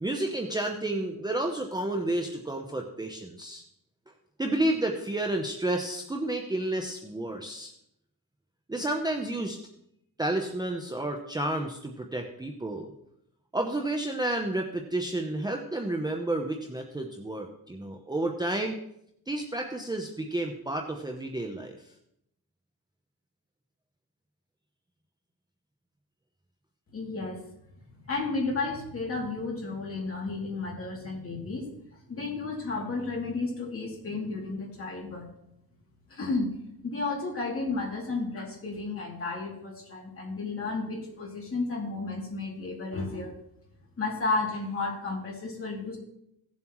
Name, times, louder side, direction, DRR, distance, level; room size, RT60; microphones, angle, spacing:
voice 1, 0.0-3.6 4.4-7.7 8.7-9.6 10.2-12.9 13.5-18.8 19.3-21.8, right 1 dB, 10° right, 2 dB, 0.7 m, -31 dB
voice 2, 26.9-27.4 28.1-31.7 32.1-35.3 36.1-36.5 36.8-43.3 44.0-46.0, left 3 dB, 35° left, -1 dB, 2.7 m, -32 dB
17.5 x 7.3 x 3.0 m, 0.77 s
wide cardioid pair, 150°, 37 cm